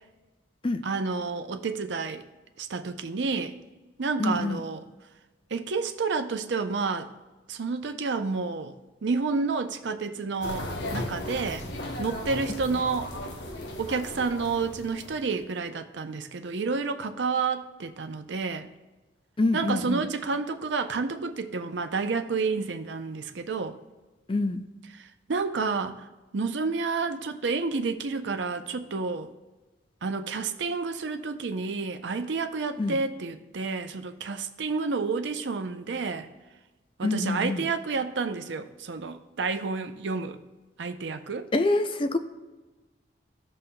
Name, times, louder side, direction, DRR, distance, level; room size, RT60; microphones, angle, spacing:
voice 1, 0.8-2.2 2.6-3.5 4.0-4.8 5.5-7.1 7.5-8.7 9.0-11.7 12.0-13.1 13.8-18.7 19.5-23.8 25.0-26.0 26.3-29.3 30.0-36.3 37.0-40.4 40.8-41.5, right 4 dB, 70° right, 8 dB, 0.6 m, -30 dB
voice 2, 4.2-4.6 19.4-20.1 24.3-24.6 32.8-33.0 37.0-37.7 41.5-42.2, left 2 dB, 25° left, 8 dB, 0.4 m, -26 dB
sound 1, 10.4-15.4, left 1 dB, 65° left, 0.8 m, -36 dB
15.0 x 5.5 x 2.3 m, 1.2 s
head